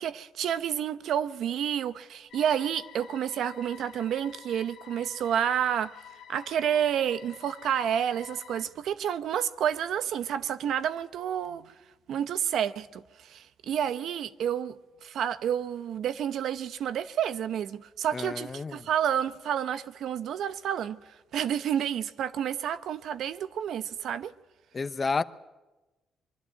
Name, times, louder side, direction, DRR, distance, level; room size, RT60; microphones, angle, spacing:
voice 1, 0.0-5.9 6.3-11.6 12.1-14.8 15.0-21.0 21.3-24.3, right 9 dB, 75° right, 0.8 m, -30 dB
sound 1, 2.3-8.7, left 9 dB, 75° left, 1.2 m, -49 dB
voice 2, 18.1-18.9 24.7-25.2, left 4 dB, 35° left, 0.8 m, -30 dB
23.5 x 12.5 x 9.4 m
cardioid pair, 95°, 0 cm